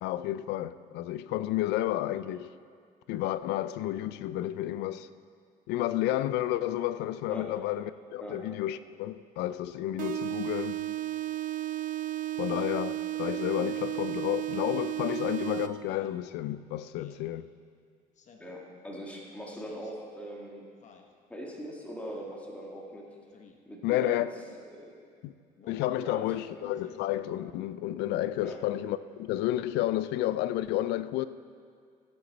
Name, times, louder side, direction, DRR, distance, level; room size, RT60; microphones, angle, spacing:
voice 1, 0.0-2.5 3.1-5.1 5.7-11.0 12.4-17.5 23.8-24.3 25.2-25.3 25.7-31.3, left 13 dB, 85° left, 0.4 m, -31 dB
voice 2, 7.3-7.6 8.2-8.5 18.4-20.7 21.3-23.2 23.7-24.2 24.6-25.0 26.0-26.6 28.4-28.6, equal, 10° left, 1.8 m, -41 dB
sound 1, 10.0-16.0, right 14 dB, 55° right, 0.5 m, -33 dB
Speech synthesizer, 14.6-14.9 15.8-16.2 17.0-17.3 18.1-18.6 19.5-19.9 20.8-21.1 22.1-22.4 23.3-23.6 24.4-24.7 25.6-25.9 26.7-27.1, left 5 dB, 45° left, 1.0 m, -56 dB
15.5 x 7.9 x 4.1 m
cardioid pair, 110°, 17 cm